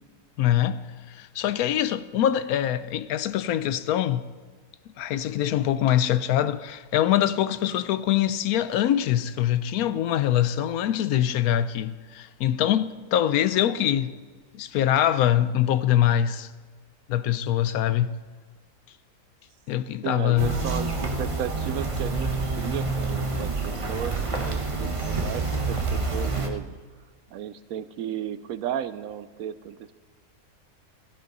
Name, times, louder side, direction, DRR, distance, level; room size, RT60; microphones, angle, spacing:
voice 1, 0.4-0.8 1.1-4.3 5.0-14.1 14.5-16.5 17.1-18.1 19.7-20.6, left 11 dB, 75° left, 1.0 m, -24 dB
voice 2, 20.0-22.3 22.6-26.7 27.3-30.0, right 10 dB, 70° right, 1.0 m, -34 dB
sound 1, 20.4-26.5, right 3 dB, 25° right, 1.0 m, -28 dB
16.0 x 13.5 x 4.0 m
omnidirectional pair, 1.6 m